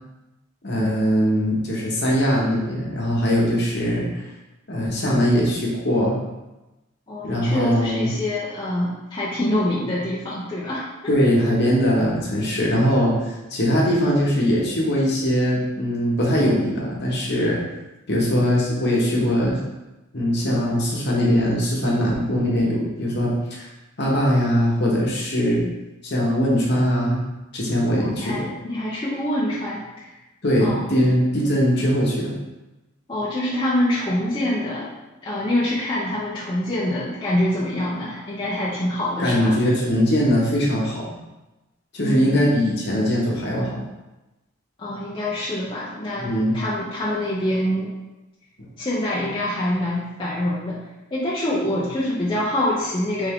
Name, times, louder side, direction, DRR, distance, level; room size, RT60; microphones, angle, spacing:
voice 1, 0.6-4.1 4.7-6.2 7.2-8.1 11.1-17.6 18.1-19.6 20.1-23.6 24.0-25.6 26.0-27.2 27.5-28.5 30.4-32.4 39.2-41.1 41.9-43.8 46.2-46.5, equal, 50° left, -4 dB, 1.0 m, -21 dB
voice 2, 7.1-10.9 27.9-30.1 30.6-30.9 33.1-34.9 35.2-39.5 42.0-42.4 44.8-47.9 48.8-50.8 51.1-53.3, left 1 dB, 25° left, -8 dB, 0.6 m, -25 dB
3.5 x 3.4 x 3.6 m, 1.0 s
head